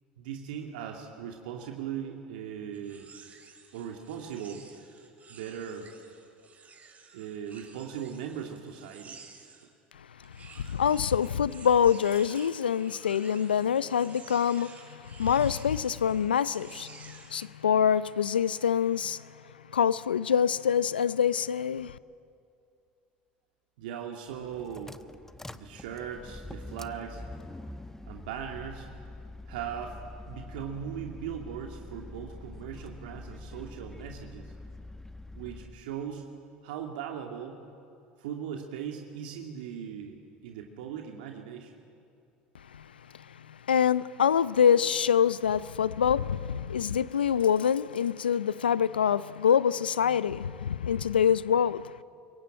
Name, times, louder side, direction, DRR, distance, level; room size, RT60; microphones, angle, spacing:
voice 1, 0.2-3.1 3.7-4.6 5.3-5.9 7.1-9.2 23.8-25.0 25.5-27.2 28.0-28.9 29.5-30.0 30.2-34.5 35.4-36.2 36.6-37.6 38.2-41.8, right 8 dB, 70° right, 2.5 m, -39 dB
sound 1, 2.7-9.7 10.2-17.5, right 5 dB, 30° right, 5.8 m, -52 dB
voice 2, 10.6-19.2 19.7-22.0 42.7-42.8 43.5-51.9, left 8 dB, 85° left, 0.6 m, -25 dB
sound 2, 24.3-35.8, left 2 dB, 10° left, 1.1 m, -45 dB
26.0 x 22.5 x 8.8 m
hypercardioid pair, 70°, 5 cm